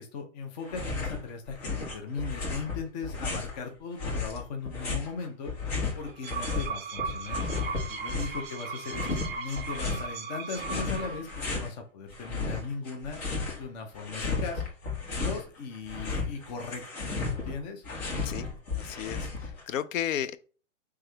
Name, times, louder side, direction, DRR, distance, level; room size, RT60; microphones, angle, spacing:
voice 1, 0.0-5.5 5.9-7.4 8.0-13.2 13.6-14.6 15.1-17.8, left 4 dB, 35° left, 0.8 m, -38 dB
sound 1, 0.7-1.2 1.5-3.6 4.0-6.7 7.0-8.4 8.9-10.1 10.5-11.7 12.1-13.6 13.9-15.4 15.7-19.6, left 4 dB, 55° left, 1.9 m, -33 dB
sound 2, 6.0-11.4, right 5 dB, 20° right, 0.5 m, -37 dB
voice 2, 18.7-20.4, left 10 dB, 80° left, 0.6 m, -34 dB
3.5 x 3.3 x 3.3 m
hypercardioid pair, 150°, 39 cm